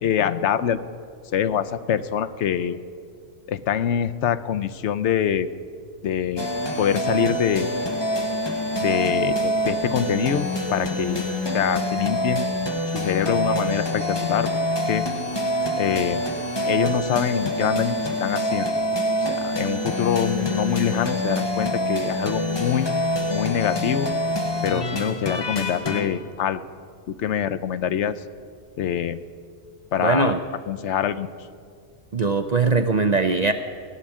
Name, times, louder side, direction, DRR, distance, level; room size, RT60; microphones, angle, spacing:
voice 1, 0.0-0.8 1.3-2.8 3.5-5.5 6.0-6.5 6.8-7.7 8.8-11.2 11.5-12.5 12.9-14.5 14.9-15.0 15.8-16.2 16.7-18.7 19.4-22.9 23.3-24.1 24.6-26.6 27.1-28.2 28.8-29.2 29.9-30.3 30.7-31.3, left 9 dB, 75° left, 11 dB, 1.0 m, -24 dB
sound 1, 6.4-26.1, left 1 dB, 20° left, 1.1 m, -26 dB
voice 2, 30.0-30.4 32.1-33.5, right 4 dB, 45° right, 7 dB, 0.6 m, -20 dB
16.5 x 7.4 x 10.0 m, 2.2 s
omnidirectional pair, 1.2 m